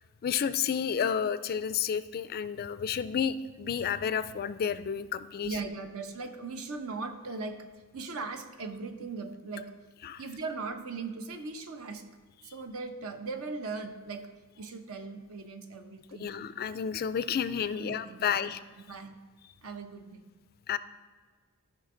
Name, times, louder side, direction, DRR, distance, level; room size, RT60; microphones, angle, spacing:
voice 1, 0.2-5.5 10.0-10.2 16.2-18.6 20.7-20.8, left 7 dB, 45° left, 14 dB, 0.3 m, -31 dB
voice 2, 5.4-7.7 7.9-9.7 10.2-12.0 12.4-14.3 14.5-16.4 17.7-19.2 19.6-20.3, right 4 dB, 70° right, 7 dB, 0.8 m, -39 dB
13.5 x 5.8 x 3.8 m, 1.5 s
head